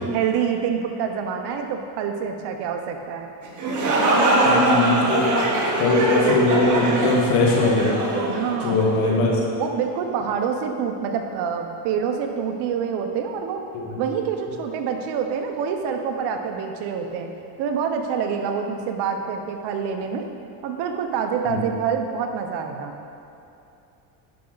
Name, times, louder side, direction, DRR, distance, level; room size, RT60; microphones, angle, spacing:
voice 1, 0.1-3.3 8.3-9.2 9.6-13.6 14.0-17.3 17.6-20.3 20.6-22.9, right 7 dB, 65° right, 5 dB, 1.0 m, -26 dB
sound 1, 3.4-9.1, right 2 dB, 40° right, 1.6 m, -22 dB
voice 2, 4.5-5.3 5.8-7.9 8.6-9.3 13.7-13.8 21.5-21.6, left 3 dB, 80° left, -2 dB, 1.9 m, -20 dB
10.0 x 5.8 x 4.1 m, 2.8 s
cardioid pair, 120°, 44 cm